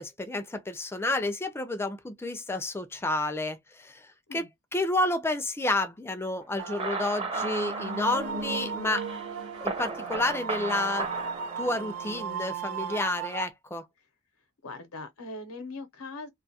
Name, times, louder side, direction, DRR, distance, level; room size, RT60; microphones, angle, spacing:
voice 1, 0.0-4.1 4.3-4.5 4.7-9.1 9.6-11.1 11.6-13.8, left 2 dB, 10° left, 0.4 m, -30 dB
sound 1, 6.6-12.4, right 3 dB, 25° right, 0.6 m, -35 dB
sound 2, 6.6-13.5, right 6 dB, 85° right, 0.4 m, -36 dB
voice 2, 14.6-16.3, left 3 dB, 85° left, 0.7 m, -40 dB
2.5 x 2.3 x 2.8 m
head